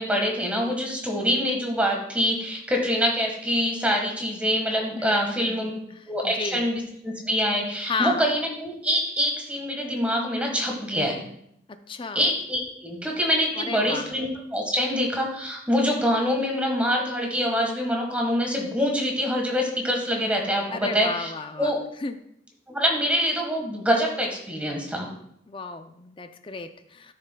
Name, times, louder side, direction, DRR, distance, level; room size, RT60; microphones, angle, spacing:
voice 1, 0.0-5.7 6.1-11.3 12.1-21.3 21.6-21.8 22.7-25.1, equal, 5° right, 0 dB, 1.4 m, -25 dB
voice 2, 5.0-6.7 7.8-8.3 11.9-12.2 13.6-14.1 20.7-21.7 22.0-22.2 25.5-27.1, left 4 dB, 25° left, 9 dB, 0.4 m, -33 dB
12.0 x 6.6 x 2.2 m, 0.73 s
head